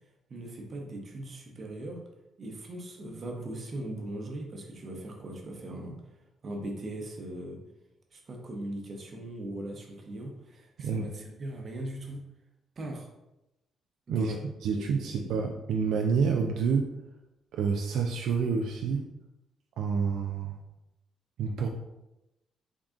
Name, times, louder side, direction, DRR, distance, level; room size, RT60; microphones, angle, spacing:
voice 1, 0.3-2.0 2.4-6.2 6.4-7.6 8.1-12.2 12.8-13.1 14.1-14.5 14.7-15.4, right 1 dB, 45° right, 2 dB, 0.8 m, -39 dB
voice 2, 10.8-11.1 14.1-14.3 14.6-16.9 17.5-19.1 19.8-20.6 21.4-21.7, right 5 dB, 80° right, 2 dB, 0.3 m, -28 dB
3.6 x 2.4 x 3.7 m, 0.94 s
cardioid pair, 90°, 0 cm